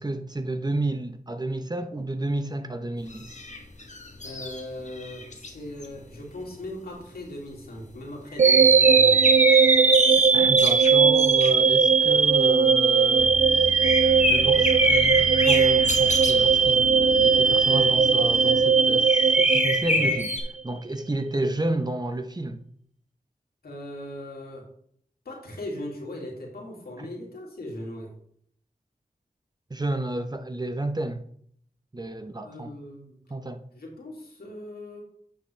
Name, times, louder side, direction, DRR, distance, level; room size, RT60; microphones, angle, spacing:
voice 1, 0.0-3.3 10.3-13.8 14.3-20.3 20.6-22.6 27.0-27.1 29.7-31.2 31.9-32.7 33.3-33.6, right 1 dB, 25° right, 0.9 m, -31 dB
sound 1, 3.1-5.5 5.8-6.7 7.7-8.0 8.3-11.8 12.0-16.5 17.8-17.9 18.3-18.6 18.9-20.4, left 3 dB, 50° left, 1.4 m, -28 dB
voice 2, 4.2-9.3 19.9-20.2 23.6-24.7 25.2-28.1 32.4-33.2 33.7-35.0, left 1 dB, 85° left, 2.5 m, -39 dB
sound 2, 8.4-20.5, right 5 dB, 50° right, 0.5 m, -19 dB
sound 3, 13.2-19.1, left 2 dB, 25° left, 0.8 m, -37 dB
9.2 x 6.5 x 3.4 m
cardioid pair, 45°, 16 cm